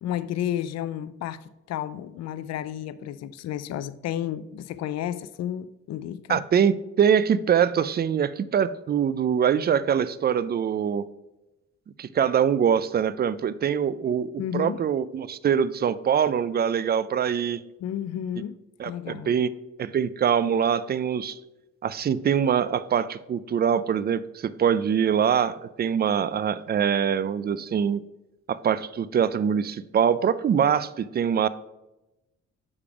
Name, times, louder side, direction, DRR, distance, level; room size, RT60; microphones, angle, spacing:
voice 1, 0.0-6.4 14.4-14.8 17.8-18.5 18.8-19.4, left 11 dB, 60° left, 0.4 m, -32 dB
voice 2, 6.3-11.0 12.0-17.6 18.8-19.5 19.8-21.4 21.8-28.0 28.5-31.5, right 8 dB, 35° right, 0.4 m, -23 dB
6.6 x 3.6 x 4.8 m
cardioid pair, 90°, 30 cm